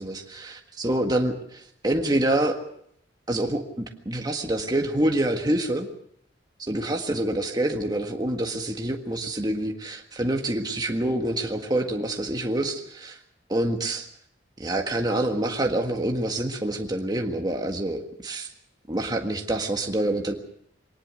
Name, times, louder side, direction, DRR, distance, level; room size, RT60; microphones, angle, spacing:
voice 1, 0.0-2.6 3.3-5.9 6.7-13.2 13.5-14.0 14.6-18.5 18.9-20.3, right 1 dB, 20° right, 3 dB, 1.7 m, -26 dB
23.0 x 19.0 x 6.4 m, 0.69 s
head